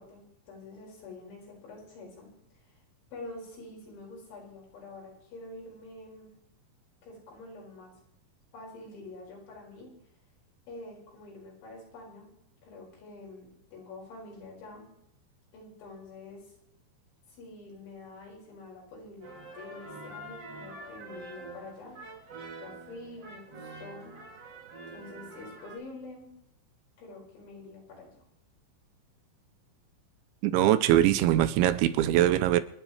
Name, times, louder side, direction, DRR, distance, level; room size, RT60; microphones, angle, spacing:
voice 1, 0.0-2.3 3.1-6.3 7.0-7.9 8.5-9.9 10.7-12.3 12.6-14.9 15.5-16.4 17.3-22.0 22.6-24.1 24.9-26.3 27.0-28.2, left 2 dB, 75° left, 7.7 m, -46 dB
sound 1, 19.2-25.8, right 2 dB, 40° right, 2.8 m, -45 dB
voice 2, 30.4-32.6, right 13 dB, 85° right, 3.0 m, -22 dB
29.0 x 9.9 x 3.3 m
omnidirectional pair, 5.4 m